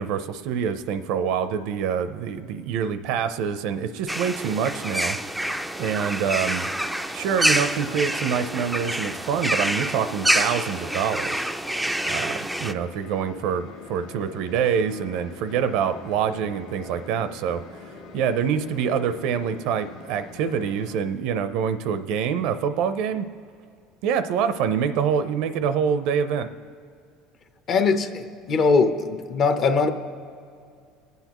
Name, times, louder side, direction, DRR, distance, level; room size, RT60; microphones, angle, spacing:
voice 1, 0.0-5.2 5.8-6.7 7.1-11.4 12.0-17.6 18.1-23.3 24.0-26.5, right 7 dB, 70° right, 11 dB, 0.5 m, -26 dB
sound 1, 4.1-12.7, right 1 dB, ahead, 0.4 m, -27 dB
sound 2, 12.6-21.0, left 4 dB, 80° left, 1.5 m, -44 dB
voice 2, 27.7-29.9, left 4 dB, 40° left, 7 dB, 0.8 m, -21 dB
23.5 x 8.1 x 3.0 m, 2.3 s
cardioid pair, 135°, 0 cm